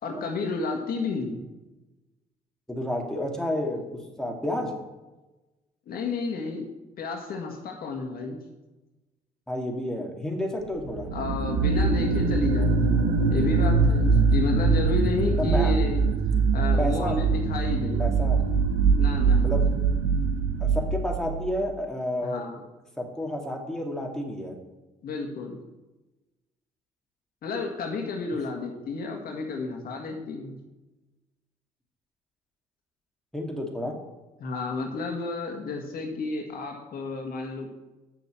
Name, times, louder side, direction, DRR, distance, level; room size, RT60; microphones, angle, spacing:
voice 1, 0.0-1.5 5.9-6.7 7.0-8.4 11.1-16.1 16.5-18.0 19.0-19.4 22.2-22.6 25.0-25.6 27.4-30.6 34.4-37.7, left 3 dB, 60° left, 2 dB, 1.8 m, -31 dB
voice 2, 2.7-3.8 4.2-4.7 9.5-11.1 15.4-15.7 16.8-17.2 18.0-18.4 19.4-19.6 20.6-22.4 23.0-24.5 33.3-33.9, left 1 dB, 5° left, 0 dB, 2.6 m, -30 dB
sound 1, 10.9-21.5, right 4 dB, 85° right, 1.0 m, -23 dB
7.6 x 6.7 x 7.4 m, 1.1 s
supercardioid pair, 65°, 17 cm